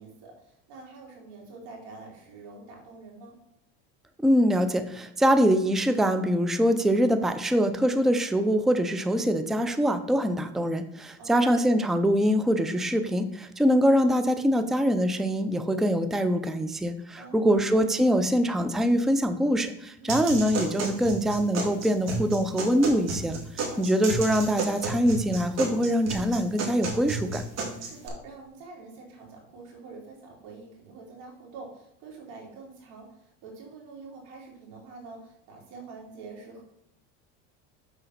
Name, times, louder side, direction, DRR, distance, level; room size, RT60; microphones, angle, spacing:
voice 1, 0.0-3.3 11.2-11.6 17.2-17.7 20.0-20.4 23.6-24.1 27.8-36.6, right 3 dB, 70° right, -1 dB, 3.3 m, -46 dB
voice 2, 4.2-27.4, equal, ahead, 9 dB, 0.5 m, -24 dB
sound 1, 20.1-28.1, right 3 dB, 50° right, 2.5 m, -33 dB
6.6 x 5.0 x 5.8 m, 0.80 s
supercardioid pair, 115°, 34 cm